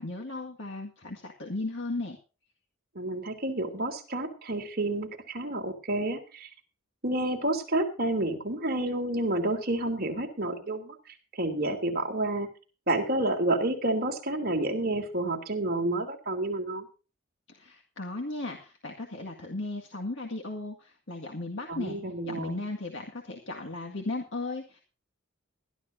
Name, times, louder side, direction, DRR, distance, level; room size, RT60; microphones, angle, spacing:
voice 1, 0.0-2.2 17.5-22.0 22.3-24.8, left 2 dB, 60° left, 1 dB, 1.9 m, -36 dB
voice 2, 2.9-6.5 7.0-11.0 11.3-12.5 12.9-16.8 21.7-22.6, right 1 dB, 45° right, 2 dB, 3.1 m, -29 dB
20.5 x 12.5 x 2.7 m, 0.34 s
head